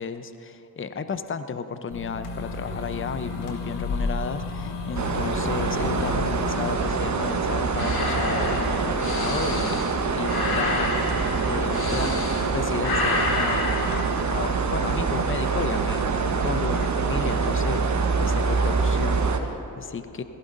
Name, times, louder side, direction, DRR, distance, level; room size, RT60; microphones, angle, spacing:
voice 1, 0.0-9.8 10.1-11.2 11.4-12.2 12.5-20.2, left 5 dB, 25° left, 10 dB, 0.8 m, -33 dB
sound 1, 1.9-6.8, left 3 dB, 85° left, 1.2 m, -32 dB
sound 2, 4.9-19.4, right 4 dB, 40° right, 1.3 m, -25 dB
sound 3, 7.8-12.5 12.8-14.0, left 2 dB, 55° left, 2.4 m, -29 dB
17.5 x 15.0 x 2.7 m, 3.0 s
hypercardioid pair, 45°, 45 cm